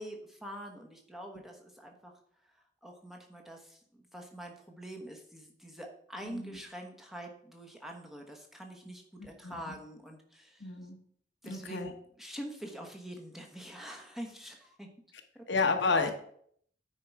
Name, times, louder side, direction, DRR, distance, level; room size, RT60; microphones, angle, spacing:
voice 1, 0.0-2.2 2.4-2.5 2.8-10.7 11.4-14.9 15.3-15.4, right 1 dB, ahead, 1 dB, 1.1 m, -45 dB
voice 2, 6.2-6.6 9.2-9.7 10.6-11.0 11.5-11.9 15.5-16.1, left 4 dB, 70° left, 5 dB, 1.0 m, -31 dB
9.5 x 4.6 x 4.7 m, 0.64 s
head